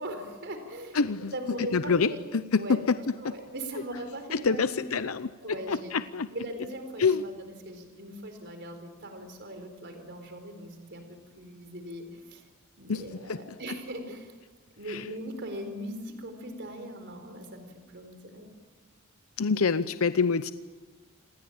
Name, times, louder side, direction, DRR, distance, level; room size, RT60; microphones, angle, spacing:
voice 1, 0.0-1.0 1.3-2.2 2.6-2.8 3.2-5.1 5.4-5.9 6.3-12.4 12.8-14.3 14.7-18.5, equal, 55° right, 7 dB, 4.3 m, -40 dB
voice 2, 0.9-1.3 1.7-3.0 3.2-3.3 4.3-5.3 5.7-6.3 7.0-7.2 12.9-13.0 13.3-13.4 14.9-15.0 19.4-20.5, left 5 dB, 90° left, 12 dB, 0.7 m, -26 dB
27.5 x 20.5 x 8.8 m, 1.3 s
head